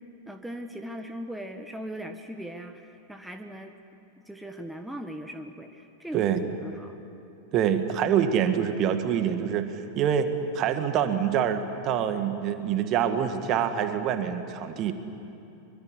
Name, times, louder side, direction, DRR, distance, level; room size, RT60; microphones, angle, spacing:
voice 1, 0.3-3.7 4.3-7.0, equal, ahead, 5 dB, 1.4 m, -39 dB
voice 2, 6.1-6.5 7.5-14.9, right 8 dB, 35° right, 8 dB, 1.8 m, -26 dB
24.5 x 24.0 x 9.9 m, 2.9 s
figure-of-eight pair, 90°, 0 cm